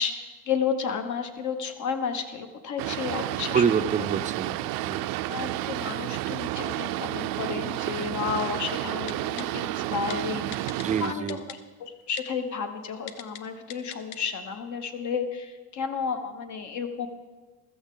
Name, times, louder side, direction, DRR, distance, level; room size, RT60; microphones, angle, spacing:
voice 1, 0.0-3.9 5.3-17.1, left 6 dB, 55° left, 8 dB, 1.2 m, -32 dB
Boat Water vehicle, 2.8-11.1, right 15 dB, 80° right, 0.5 m, -31 dB
voice 2, 3.5-5.1 10.7-11.4, right 7 dB, 20° right, 10 dB, 0.4 m, -27 dB
Typing, 9.1-9.4 10.1-10.2 10.5-10.9 11.3-11.6 12.2-12.3 13.1-13.4 13.7-14.2 14.5-14.6, left 10 dB, 85° left, 0.8 m, -39 dB
15.0 x 13.5 x 3.8 m, 1.4 s
cardioid pair, 155°, 35 cm